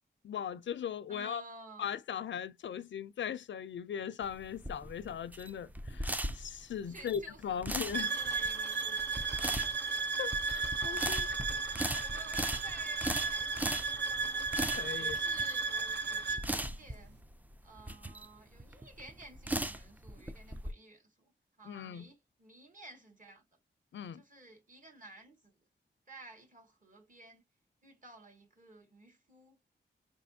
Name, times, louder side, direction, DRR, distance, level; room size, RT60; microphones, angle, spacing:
voice 1, 0.2-1.4 1.8-8.2 10.2-11.3 14.8-15.2 21.7-22.1 23.9-24.2, left 8 dB, 80° left, 0.5 m, -39 dB
voice 2, 1.1-1.9 6.9-9.8 10.7-17.2 17.6-21.3 21.6-23.4 24.1-25.5 26.1-27.4 27.8-29.6, right 2 dB, 45° right, 1.6 m, -54 dB
sound 1, 4.2-20.7, right 1 dB, 10° right, 0.3 m, -39 dB
sound 2, 7.9-16.5, right 4 dB, 65° right, 0.7 m, -34 dB
4.8 x 3.2 x 2.7 m
wide cardioid pair, 110°, 19 cm